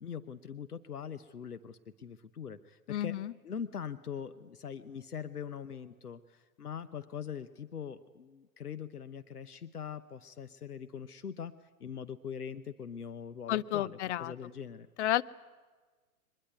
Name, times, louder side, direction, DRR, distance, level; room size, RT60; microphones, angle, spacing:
voice 1, 0.0-3.2 3.4-11.5 11.8-14.9, left 7 dB, 90° left, 11 dB, 0.9 m, -42 dB
voice 2, 2.9-3.3 13.5-14.3 15.0-15.2, left 13 dB, 50° left, 16 dB, 0.8 m, -31 dB
23.0 x 21.0 x 9.5 m, 1.4 s
figure-of-eight pair, 110°, 44 cm